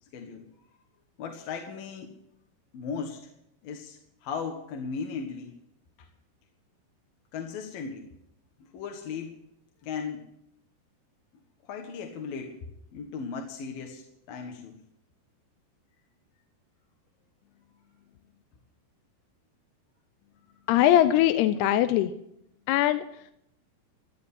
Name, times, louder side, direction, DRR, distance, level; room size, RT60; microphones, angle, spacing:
voice 1, 1.2-2.1 2.7-3.3 3.6-5.6 7.3-8.1 8.7-9.3 9.8-10.2 11.6-12.6 12.9-14.8, left 5 dB, 60° left, 3 dB, 2.9 m, -36 dB
voice 2, 20.7-22.1 22.7-23.0, left 12 dB, 80° left, 11 dB, 2.6 m, -21 dB
14.0 x 9.5 x 9.6 m, 0.76 s
omnidirectional pair, 5.0 m